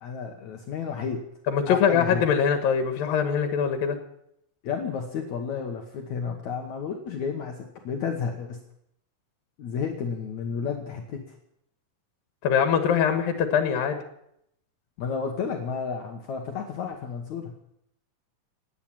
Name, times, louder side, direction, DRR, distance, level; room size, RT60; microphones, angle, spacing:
voice 1, 0.0-1.2 1.7-2.3 4.6-8.6 9.6-11.2 15.0-17.5, left 6 dB, 60° left, 3 dB, 2.5 m, -31 dB
voice 2, 1.5-4.0 12.4-14.0, left 7 dB, 85° left, 7 dB, 3.1 m, -23 dB
18.5 x 9.1 x 8.6 m, 0.76 s
omnidirectional pair, 4.0 m